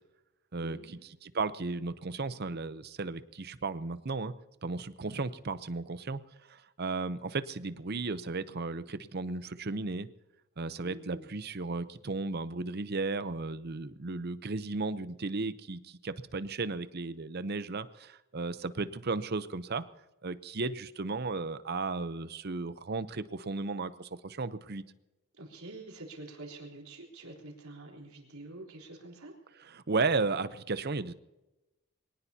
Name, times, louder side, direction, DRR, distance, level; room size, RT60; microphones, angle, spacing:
voice 1, 0.6-1.0 10.8-11.3 25.3-29.3, right 2 dB, 85° right, 0 dB, 3.9 m, -47 dB
voice 2, 1.2-4.3 4.6-6.2 6.5-10.1 10.6-19.8 20.2-24.8 29.7-31.1, right 3 dB, 50° right, 13 dB, 0.7 m, -34 dB
23.0 x 18.0 x 2.8 m, 1.0 s
head